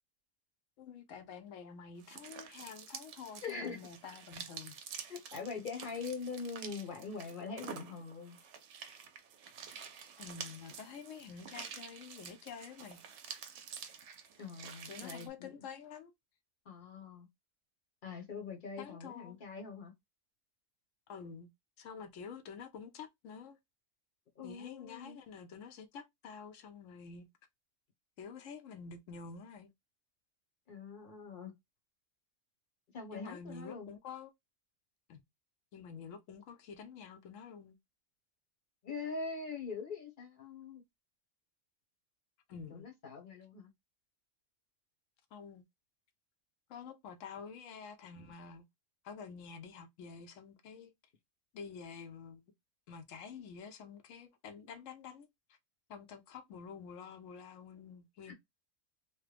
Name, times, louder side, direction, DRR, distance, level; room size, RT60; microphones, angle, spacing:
voice 1, 0.8-4.8 10.2-13.0 14.9-16.1 18.8-19.4 21.1-21.5 21.8-23.6 24.4-27.3 28.2-29.7 33.1-34.3 35.1-35.2 35.7-37.8 42.5-42.9 45.3-45.6 46.7-48.6 49.0-50.9 51.5-52.4 52.9-55.3 55.9-58.3, left 6 dB, 75° left, 0.9 m, -48 dB
sound 1, 2.0-15.3, right 7 dB, 65° right, 0.8 m, -49 dB
voice 2, 3.4-3.8 5.1-8.4 14.4-15.5 16.6-17.3 18.0-19.9 24.4-25.2 30.7-31.5 32.9-33.9 38.8-40.8 42.7-43.7 58.3-58.4, left 4 dB, 45° left, 0.9 m, -43 dB
3.0 x 2.1 x 3.3 m
omnidirectional pair, 1.4 m